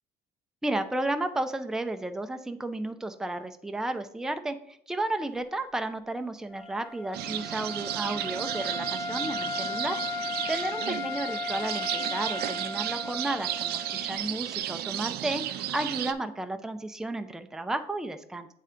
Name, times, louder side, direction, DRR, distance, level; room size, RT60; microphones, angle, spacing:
voice 1, 0.6-10.0 10.5-18.5, right 2 dB, 5° right, 7 dB, 0.4 m, -33 dB
Wind instrument woodwind instrument, 6.5-14.3, left 3 dB, 15° left, 0.9 m, -36 dB
sound 1, 7.1-16.1, right 12 dB, 70° right, 0.4 m, -33 dB
8.0 x 3.3 x 3.7 m, 0.69 s
cardioid pair, 110°, 17 cm